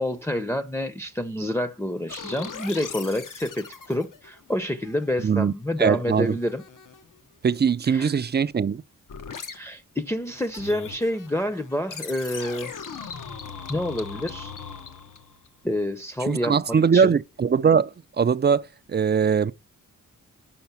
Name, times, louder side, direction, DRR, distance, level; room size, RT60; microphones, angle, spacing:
voice 1, 0.0-6.6 7.9-8.1 9.5-12.7 13.7-14.5 15.6-16.5 16.9-17.1, left 1 dB, 10° left, 0.6 m, -28 dB
sound 1, 2.1-5.3 5.7-7.2 9.1-9.6 10.2-15.5, left 6 dB, 75° left, 1.0 m, -40 dB
voice 2, 5.2-5.5 5.8-6.4 7.4-8.8 16.3-19.5, right 6 dB, 35° right, 0.4 m, -21 dB
5.9 x 5.2 x 6.8 m
cardioid pair, 70°, 32 cm